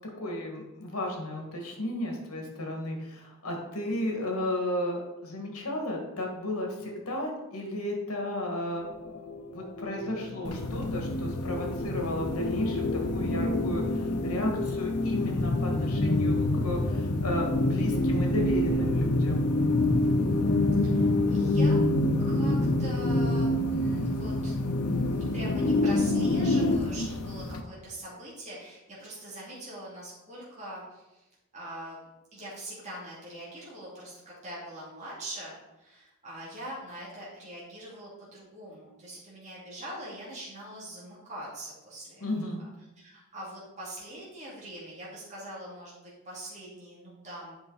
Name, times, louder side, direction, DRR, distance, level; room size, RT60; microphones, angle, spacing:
voice 1, 0.2-9.2 9.5-19.5 42.2-42.6, left 1 dB, 70° left, 1 dB, 1.9 m, -34 dB
sound 1, 8.9-26.8, left 1 dB, 50° left, 0.6 m, -27 dB
sound 2, 10.4-27.6, left 1 dB, 90° left, 0.7 m, -36 dB
voice 2, 20.8-21.8 22.3-24.6 24.8-31.3 31.5-32.0 32.3-42.3 43.0-45.9 46.2-47.5, right 1 dB, 35° right, -7 dB, 2.4 m, -43 dB
8.1 x 5.3 x 4.0 m, 0.99 s
head